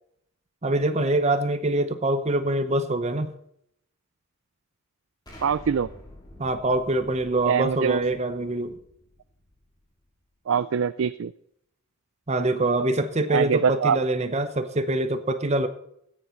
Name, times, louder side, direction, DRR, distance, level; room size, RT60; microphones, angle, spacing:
voice 1, 0.6-3.3 6.4-8.8 12.3-15.7, right 2 dB, 30° right, 10 dB, 0.8 m, -24 dB
Explosion, 5.3-10.1, left 1 dB, 20° left, 3.8 m, -49 dB
voice 2, 5.4-5.9 7.5-8.0 10.5-11.3 13.3-14.0, right 7 dB, 70° right, 14 dB, 0.4 m, -23 dB
14.5 x 9.6 x 4.4 m, 0.72 s
head